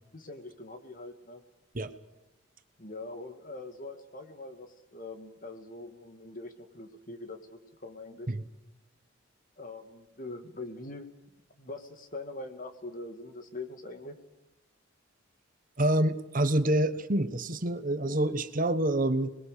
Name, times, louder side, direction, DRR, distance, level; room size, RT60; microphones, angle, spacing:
voice 1, 0.1-1.4 2.8-8.3 9.6-11.1 11.6-14.2, left 2 dB, 40° left, 7 dB, 2.1 m, -43 dB
voice 2, 15.8-19.3, right 1 dB, 40° right, 11 dB, 1.1 m, -27 dB
26.5 x 21.0 x 6.7 m, 0.96 s
head